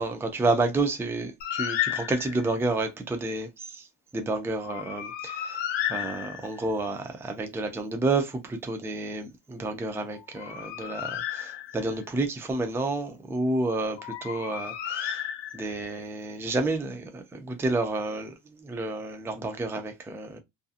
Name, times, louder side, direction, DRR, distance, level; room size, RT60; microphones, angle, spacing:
voice 1, 0.0-3.9 4.1-5.6 5.9-15.2 15.5-20.4, right 2 dB, 5° right, 0.3 m, -30 dB
Bird, 1.4-2.6 4.6-6.7 10.1-12.0 14.0-15.9, left 11 dB, 75° left, 0.7 m, -33 dB
2.7 x 2.5 x 2.3 m
wide cardioid pair, 175°, 43 cm